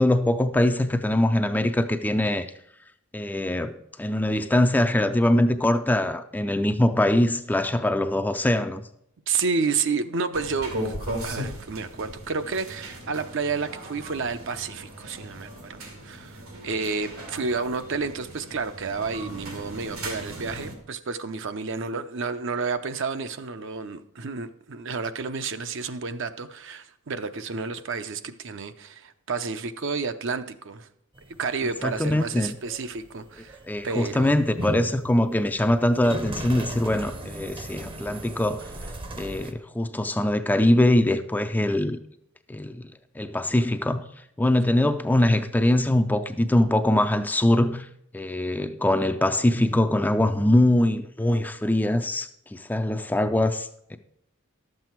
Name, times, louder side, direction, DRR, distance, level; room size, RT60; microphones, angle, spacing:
voice 1, 0.0-2.5 3.1-8.8 31.8-32.5 33.7-38.7 39.2-42.0 42.5-44.0 44.4-47.9 48.1-54.0, left 1 dB, 10° left, 0.4 m, -23 dB
voice 2, 9.3-11.0 11.2-30.9 31.4-33.6 33.8-34.4, right 4 dB, 60° right, 0.6 m, -30 dB
sound 1, 10.3-20.7, right 1 dB, 85° right, 2.1 m, -37 dB
sound 2, 31.2-39.5, right 1 dB, 25° right, 0.7 m, -37 dB
12.0 x 7.6 x 4.5 m
head